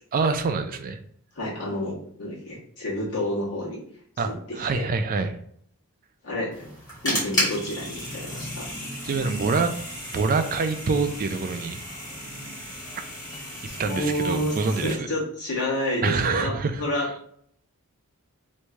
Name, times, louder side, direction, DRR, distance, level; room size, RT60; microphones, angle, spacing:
voice 1, 0.1-1.0 4.2-5.4 9.0-9.7 10.1-11.8 13.8-15.1 16.0-16.8, right 4 dB, 40° right, 8 dB, 0.4 m, -25 dB
voice 2, 1.3-3.8 4.2-4.9 6.2-6.7 7.0-8.7 13.8-17.1, left 1 dB, 80° left, -6 dB, 1.4 m, -29 dB
sound 1, 6.5-14.9, equal, 20° left, 1.5 m, -33 dB
3.1 x 2.7 x 3.4 m, 0.65 s
head